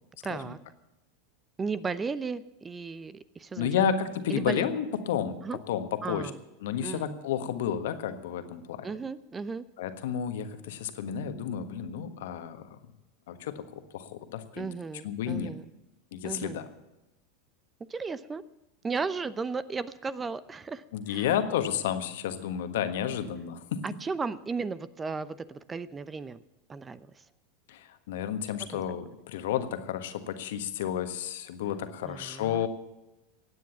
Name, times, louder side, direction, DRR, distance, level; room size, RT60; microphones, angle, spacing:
voice 1, 0.2-0.6 1.6-3.7 4.3-4.7 5.4-5.6 6.0-6.4 6.8-7.2 8.8-9.7 14.6-15.6 16.2-16.7 17.9-18.4 18.8-21.4 23.8-26.4 26.7-27.1 28.7-28.8 32.0-32.7, right 4 dB, 20° right, 17 dB, 0.7 m, -35 dB
voice 2, 3.6-6.3 6.6-8.9 9.8-12.8 13.3-14.7 15.0-15.5 16.1-16.7 20.9-23.8 27.7-32.7, left 9 dB, 70° left, 9 dB, 1.4 m, -31 dB
16.5 x 9.5 x 7.1 m, 0.96 s
hypercardioid pair, 90°, 0 cm